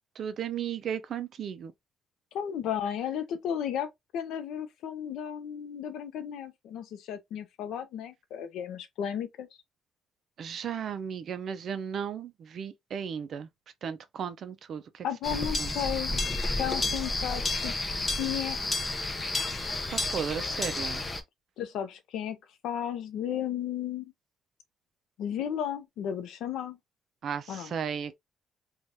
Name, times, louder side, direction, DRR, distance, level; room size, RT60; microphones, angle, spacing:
voice 1, 0.2-1.7 10.4-13.5 13.8-15.1 15.3-15.7 19.9-21.0 27.2-28.1, right 8 dB, 50° right, 0.4 m, -35 dB
voice 2, 2.3-9.5 15.0-16.2 16.6-17.7 18.2-18.6 21.6-22.4 22.6-24.1 25.2-26.8 27.5-27.7, left 9 dB, 80° left, 0.6 m, -34 dB
sound 1, 15.2-21.2, left 2 dB, 15° left, 0.5 m, -31 dB
3.3 x 2.3 x 2.6 m
cardioid pair, 150°, 0 cm